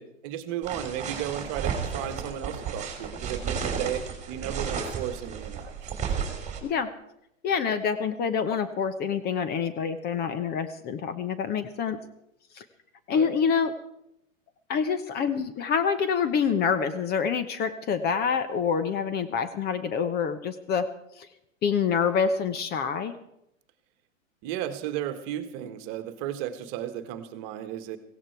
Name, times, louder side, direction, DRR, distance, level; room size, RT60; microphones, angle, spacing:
voice 1, 0.0-6.5 13.1-13.4 24.4-28.0, right 11 dB, 40° right, 9 dB, 1.5 m, -34 dB
sound 1, 0.6-6.6, right 6 dB, 15° right, 3.2 m, -33 dB
voice 2, 7.4-12.0 12.5-12.6 13.1-13.7 14.7-20.9 21.2-21.3 21.6-23.1, left 6 dB, 25° left, 11 dB, 0.9 m, -26 dB
16.5 x 16.0 x 4.6 m, 0.80 s
hypercardioid pair, 120°, 40 cm